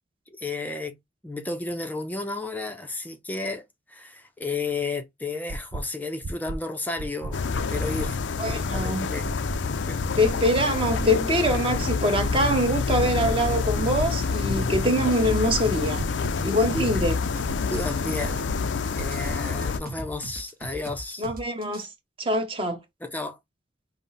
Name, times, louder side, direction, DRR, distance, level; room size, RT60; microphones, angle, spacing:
voice 1, 0.4-0.9 1.2-8.2 8.5-9.3 9.6-10.0 16.7-16.9 17.7-18.5 19.0-21.3 23.0-23.4, left 3 dB, 10° left, 0.6 m, -33 dB
sound 1, 5.5-5.8 6.2-6.6 7.0-7.3 7.7-8.1 8.5-8.8 9.2-9.6 10.0-10.3 10.7-11.1 11.5-11.8 12.2-12.6 13.0-13.3 13.7-14.1 14.5-14.8 15.2-15.6 16.0-16.3 16.7-17.1 17.5-17.8 18.2-18.6 19.0-19.3, right 2 dB, 85° right, 0.6 m, -33 dB
sound 2, 7.3-19.8, left 5 dB, 85° left, 0.5 m, -27 dB
voice 2, 8.4-9.1 10.2-16.1 16.4-17.2 21.2-21.9 22.2-22.8, equal, 30° right, 1.1 m, -24 dB
sound 3, 13.9-21.9, right 1 dB, 50° right, 0.8 m, -39 dB
5.4 x 2.1 x 4.0 m
head